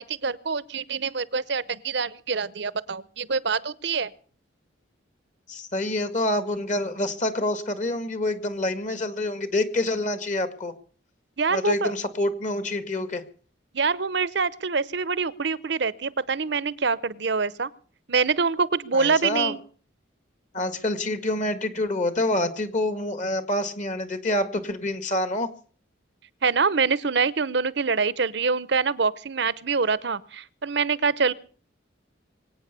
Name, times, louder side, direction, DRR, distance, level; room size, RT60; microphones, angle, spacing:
voice 1, 0.0-4.1 11.4-11.9 13.7-17.7 18.1-19.6 26.4-31.3, right 5 dB, 55° right, 19 dB, 0.8 m, -25 dB
voice 2, 5.5-10.7 11.5-13.2 18.9-19.5 20.5-25.5, left 1 dB, 40° left, 11 dB, 1.8 m, -27 dB
23.5 x 9.0 x 6.8 m, 0.43 s
head